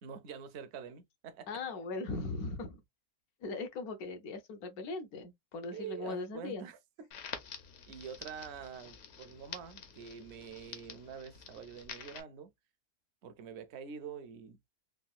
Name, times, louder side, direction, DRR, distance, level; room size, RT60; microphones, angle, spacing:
voice 1, 0.0-1.5 5.7-7.1 7.9-12.5 13.2-14.6, right 7 dB, 65° right, 0.7 m, -46 dB
voice 2, 1.5-2.8 3.4-6.7, left 3 dB, 80° left, 1.1 m, -39 dB
Crackle, 7.1-12.2, left 7 dB, 65° left, 0.9 m, -48 dB
3.7 x 2.3 x 2.3 m
omnidirectional pair, 1.6 m